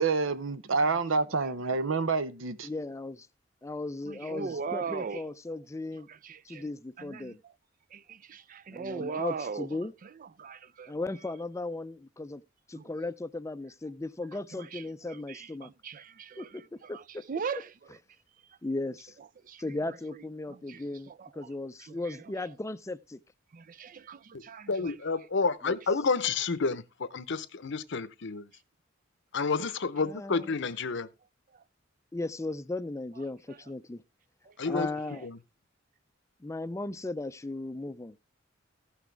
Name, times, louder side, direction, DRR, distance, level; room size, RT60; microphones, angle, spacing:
voice 1, 0.0-2.7, right 4 dB, 85° right, 0.9 m, -28 dB
voice 2, 2.6-3.3 3.6-6.1 6.4-7.4 8.7-9.9 10.9-12.4 12.7-15.7 16.4-16.6 16.9-17.2 18.6-19.1 19.6-23.2 25.6-25.8 30.0-30.5 32.1-34.0 34.7-35.3 36.4-38.2, left 2 dB, 15° left, 0.5 m, -36 dB
voice 3, 4.1-5.2 6.1-6.7 7.0-7.3 7.9-9.7 10.0-10.9 12.8-12.9 14.3-14.8 15.1-17.7 19.4-19.7 20.5-21.5 21.8-22.2 23.5-24.9 34.5-34.6, right 5 dB, 45° right, 0.4 m, -39 dB
voice 4, 24.7-28.4 29.3-31.1 34.6-34.9 35.2-35.4, left 4 dB, 65° left, 0.8 m, -30 dB
15.5 x 6.1 x 3.4 m
head